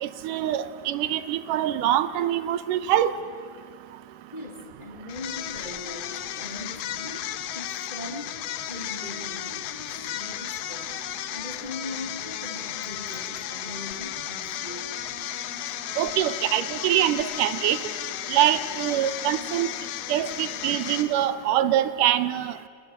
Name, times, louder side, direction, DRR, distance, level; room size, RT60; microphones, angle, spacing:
voice 1, 0.0-3.1 16.0-17.8 18.3-19.7 20.1-22.5, right 12 dB, 90° right, 14 dB, 2.5 m, -24 dB
voice 2, 4.3-8.4 8.7-10.9 11.3-15.0, left 2 dB, 15° left, 3 dB, 2.3 m, -40 dB
sound 1, 5.1-21.4, left 13 dB, 75° left, 1.5 m, -34 dB
25.5 x 19.5 x 9.0 m, 2.2 s
omnidirectional pair, 3.7 m